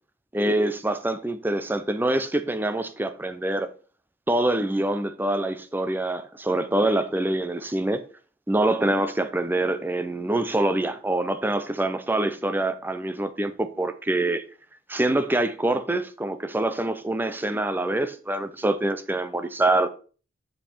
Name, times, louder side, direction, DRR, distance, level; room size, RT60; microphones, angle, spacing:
voice 1, 0.3-3.7 4.3-8.1 8.5-14.4 14.9-19.9, right 1 dB, 10° right, 0.5 m, -25 dB
7.2 x 5.4 x 4.4 m
head